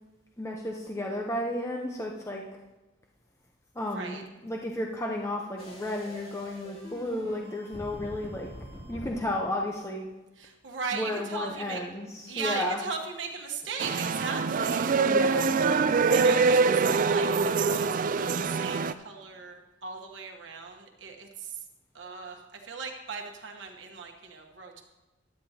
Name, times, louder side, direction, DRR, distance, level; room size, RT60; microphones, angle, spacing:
voice 1, 0.4-2.4 3.8-8.5 8.9-10.0 10.9-12.8 15.0-15.5, left 1 dB, 15° left, 0 dB, 0.8 m, -33 dB
voice 2, 3.8-4.2 10.3-11.8 12.3-15.2 15.6-21.6 21.9-24.8, right 5 dB, 65° right, 2 dB, 1.2 m, -38 dB
sound 1, 5.6-9.1, equal, 30° left, 2.9 m, -44 dB
sound 2, 13.8-18.9, right 4 dB, 45° right, 0.4 m, -24 dB
16.0 x 11.0 x 2.9 m, 1.1 s
head